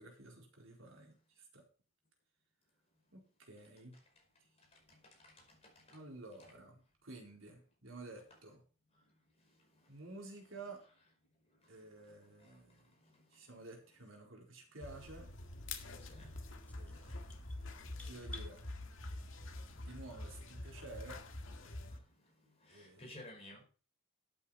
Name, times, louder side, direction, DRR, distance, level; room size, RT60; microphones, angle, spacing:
voice 1, 0.0-1.6 3.1-4.0 5.9-8.6 9.9-10.8 11.7-12.9 13.3-15.3 16.8-17.3 18.0-18.6 19.8-21.2 22.7-23.0, right 2 dB, 70° right, 4.3 m, -52 dB
voice 2, 4.7-6.1 6.4-6.6 8.3-8.4 8.9-10.5 10.8-10.9 11.6-13.7 16.0-17.3 17.8-18.7 19.4-20.0 21.9-23.6, left 1 dB, 30° left, 5.0 m, -60 dB
sound 1, 14.8-22.0, left 2 dB, 65° left, 2.0 m, -46 dB
sound 2, 16.7-18.5, left 1 dB, 5° left, 1.5 m, -53 dB
12.0 x 8.8 x 4.5 m
head